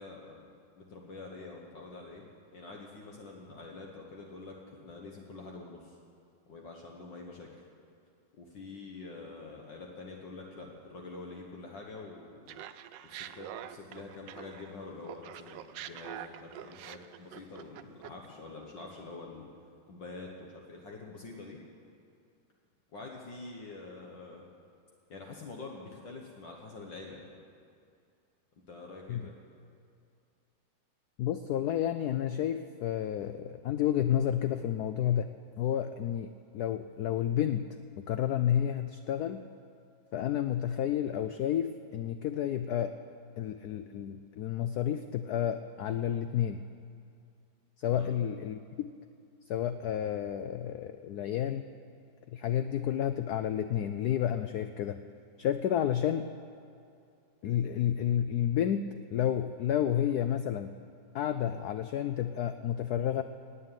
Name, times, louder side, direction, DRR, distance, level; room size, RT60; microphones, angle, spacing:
voice 1, 0.0-2.3 2.5-5.9 6.5-7.5 8.4-12.6 13.0-19.5 19.9-21.6 22.9-24.5 25.1-27.3 28.7-29.3 47.9-48.1, left 3 dB, 65° left, 0 dB, 1.9 m, -46 dB
Laughter, 12.5-14.7 15.0-18.3, right 11 dB, 75° right, 1.2 m, -45 dB
voice 2, 31.2-35.3 35.6-37.6 38.0-39.4 40.1-42.9 43.4-46.6 47.8-48.9 49.5-51.7 52.3-55.0 55.4-56.3 57.4-58.9 59.1-60.7 61.1-63.2, left 10 dB, 85° left, 10 dB, 0.8 m, -30 dB
18.5 x 6.9 x 9.1 m, 2.5 s
omnidirectional pair, 2.2 m